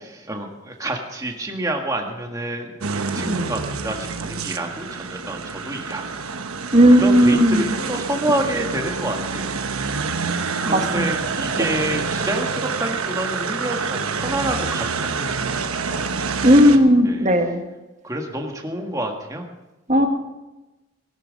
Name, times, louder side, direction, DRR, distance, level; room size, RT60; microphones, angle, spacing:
voice 1, 0.0-2.8 3.1-6.0 7.0-9.5 10.7-16.1 16.4-16.8 17.0-17.3 18.0-19.5, right 1 dB, 15° right, 2 dB, 1.7 m, -28 dB
sound 1, 2.8-16.8, right 5 dB, 80° right, 1.1 m, -27 dB
voice 2, 6.7-7.7 10.6-11.1 11.6-11.7 16.4-17.6 19.9-20.1, equal, 30° right, 4 dB, 1.6 m, -15 dB
18.0 x 11.5 x 5.3 m, 1.0 s
head